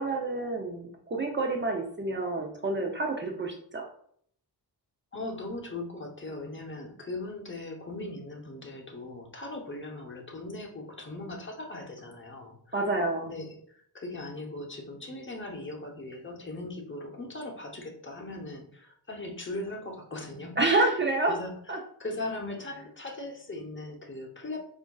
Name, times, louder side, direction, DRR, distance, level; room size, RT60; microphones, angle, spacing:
voice 1, 0.0-3.9 12.7-13.3 20.6-21.3 21.7-21.8, right 2 dB, 25° right, 1 dB, 0.5 m, -28 dB
voice 2, 5.1-12.8 13.2-20.9 21.3-21.5 22.0-24.6, left 2 dB, 30° left, 1 dB, 0.8 m, -39 dB
4.8 x 2.6 x 2.3 m, 0.64 s
cardioid pair, 75°, 42 cm